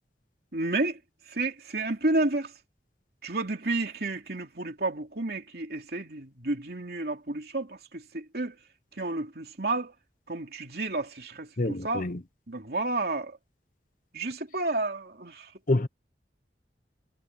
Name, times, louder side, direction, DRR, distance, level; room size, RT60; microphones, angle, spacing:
voice 1, 0.5-1.0 1.3-2.5 3.2-8.6 9.0-9.9 10.3-12.1 12.5-13.4 14.1-15.5, right 2 dB, 60° right, 3.2 m, -31 dB
voice 2, 11.6-12.2 15.7-15.9, left 2 dB, 50° left, 0.9 m, -26 dB
head